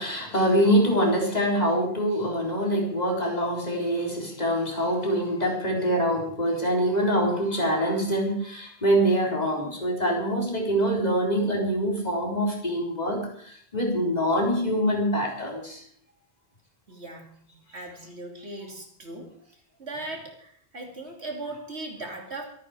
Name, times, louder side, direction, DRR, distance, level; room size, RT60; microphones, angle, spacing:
voice 1, 0.0-15.8, equal, 40° left, -1 dB, 4.0 m, -25 dB
voice 2, 16.9-17.3 17.7-22.4, right 2 dB, 80° right, 1 dB, 3.4 m, -38 dB
24.5 x 9.3 x 4.9 m, 0.62 s
omnidirectional pair, 1.1 m